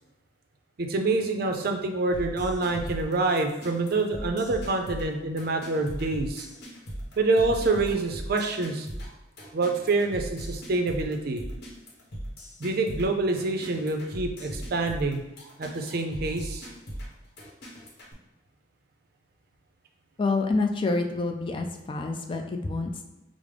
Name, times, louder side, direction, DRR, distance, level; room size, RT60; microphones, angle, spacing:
voice 1, 0.8-6.5 7.2-8.9 9.5-11.4 12.6-15.2 15.6-16.7, right 3 dB, 55° right, 4 dB, 0.5 m, -26 dB
sound 1, 2.1-18.1, equal, 60° left, 0.9 m, -38 dB
voice 2, 20.2-23.0, left 3 dB, 25° left, 4 dB, 0.4 m, -27 dB
4.9 x 2.0 x 3.3 m, 1.0 s
head